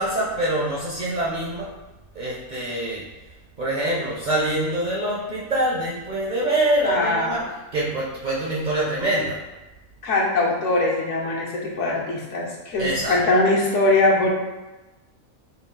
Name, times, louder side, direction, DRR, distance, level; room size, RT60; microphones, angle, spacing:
voice 1, 0.0-1.7 2.1-3.1 3.6-7.4 7.7-9.4 12.8-13.2, right 1 dB, 50° right, -6 dB, 0.6 m, -25 dB
voice 2, 6.8-7.3 10.0-14.3, left 2 dB, 65° left, -2 dB, 1.0 m, -21 dB
3.8 x 2.4 x 3.7 m, 1.1 s
omnidirectional pair, 1.4 m